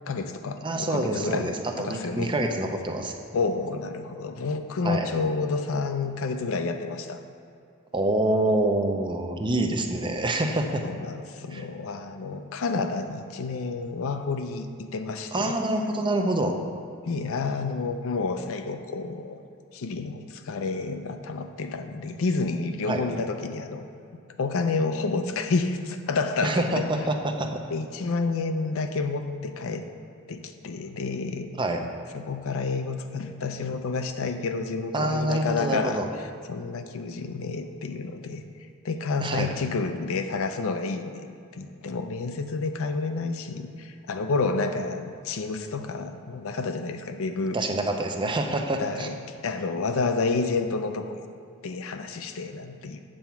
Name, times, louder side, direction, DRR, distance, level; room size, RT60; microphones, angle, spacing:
voice 1, 0.1-1.5 1.8-2.3 3.3-7.2 10.9-15.5 17.1-19.4 19.7-23.9 24.4-26.9 27.7-29.8 30.3-31.5 32.1-36.0 36.5-38.4 38.8-41.3 41.5-47.6 48.8-49.1 49.4-51.3 51.6-53.0, left 4 dB, 65° left, 7 dB, 0.5 m, -29 dB
voice 2, 0.6-3.1 4.8-5.1 7.9-10.8 11.5-11.7 15.3-16.6 22.9-23.0 26.4-27.6 31.6-31.8 34.9-36.1 39.2-39.5 47.5-49.1, right 1 dB, 20° right, 4 dB, 0.6 m, -26 dB
7.7 x 4.5 x 7.0 m, 2.5 s
head